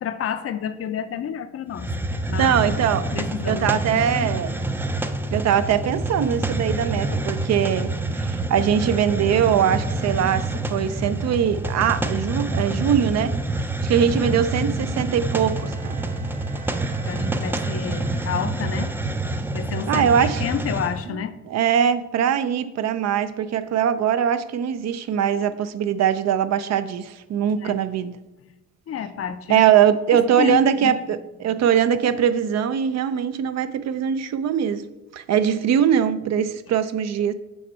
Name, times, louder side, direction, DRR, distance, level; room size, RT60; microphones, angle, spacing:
voice 1, 0.0-2.6 3.1-4.4 14.2-14.4 17.1-18.9 19.5-21.4 27.6-27.8 28.9-29.7 30.1-31.0, left 8 dB, 50° left, 0.5 m, -30 dB
Hiss, 1.7-21.0, right 2 dB, 5° right, 0.4 m, -27 dB
voice 2, 2.4-3.1 3.5-4.6 5.3-13.4 13.8-16.0 19.9-20.4 21.5-28.2 29.5-34.8 35.1-37.3, right 8 dB, 60° right, 0.5 m, -21 dB
Bowed string instrument, 15.3-19.1, right 5 dB, 35° right, 1.2 m, -46 dB
6.5 x 4.4 x 4.3 m
cardioid pair, 90°, 30 cm